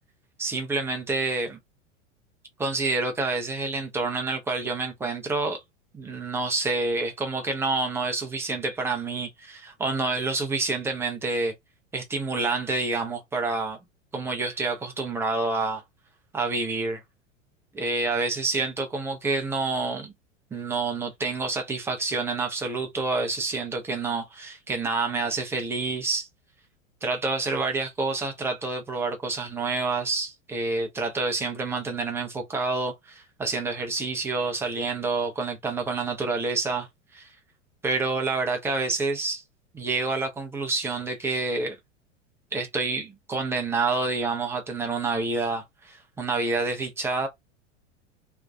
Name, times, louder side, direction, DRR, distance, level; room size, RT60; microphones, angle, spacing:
voice 1, 0.4-1.6 2.6-5.6 5.9-11.5 11.9-13.8 14.1-15.8 16.3-17.0 17.7-20.1 20.5-26.3 27.0-36.9 37.1-37.3 37.8-39.4 39.7-41.8 42.5-47.3, right 3 dB, 5° right, 0.4 m, -28 dB
2.5 x 2.2 x 2.2 m
figure-of-eight pair, 90°, 37 cm